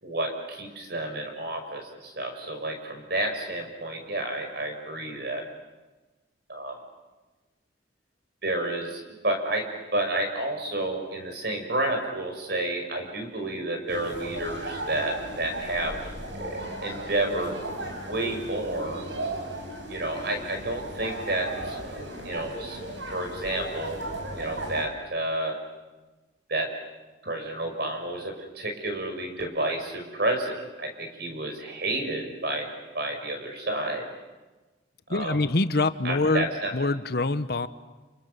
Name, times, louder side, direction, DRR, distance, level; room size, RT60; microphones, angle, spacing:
voice 1, 0.0-5.4 6.5-6.8 8.4-9.7 9.9-16.0 16.4-17.6 18.1-19.0 19.9-21.8 22.2-22.8 23.1-24.1 24.3-25.6 26.5-26.7 27.2-32.7 32.9-34.1 35.1-35.4 36.0-36.7, right 1 dB, 55° right, 4 dB, 5.8 m, -30 dB
sound 1, 13.9-24.8, right 1 dB, 70° right, 5.8 m, -36 dB
voice 2, 35.1-36.5 36.7-37.7, left 2 dB, 55° left, 12 dB, 1.0 m, -25 dB
30.0 x 28.5 x 6.9 m, 1.2 s
head